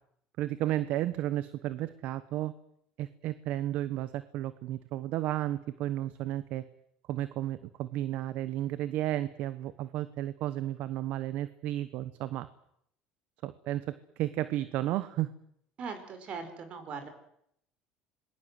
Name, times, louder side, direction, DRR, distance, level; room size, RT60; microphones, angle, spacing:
voice 1, 0.4-2.5 3.0-6.6 7.1-12.5 13.4-15.3, right 14 dB, 65° right, 14 dB, 1.1 m, -33 dB
voice 2, 15.8-17.1, right 5 dB, 50° right, 9 dB, 5.4 m, -40 dB
26.0 x 21.0 x 7.9 m, 0.73 s
supercardioid pair, 110°, 3 cm